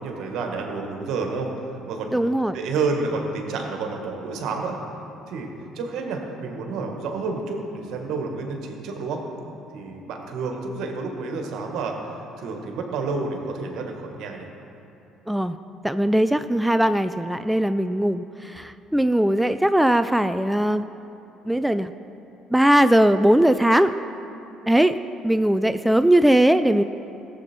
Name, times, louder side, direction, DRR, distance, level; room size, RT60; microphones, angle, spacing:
voice 1, 0.0-2.2 2.5-4.8 5.3-5.5 5.7-9.2 9.7-14.5, right 4 dB, 70° right, 2 dB, 1.8 m, -29 dB
voice 2, 2.1-2.6 15.3-15.6 15.8-20.9 21.5-21.9 22.5-23.9 24.7-25.0 25.2-26.8, right 1 dB, 5° right, 10 dB, 0.4 m, -19 dB
17.0 x 7.9 x 4.5 m, 2.8 s
hypercardioid pair, 60°, 0 cm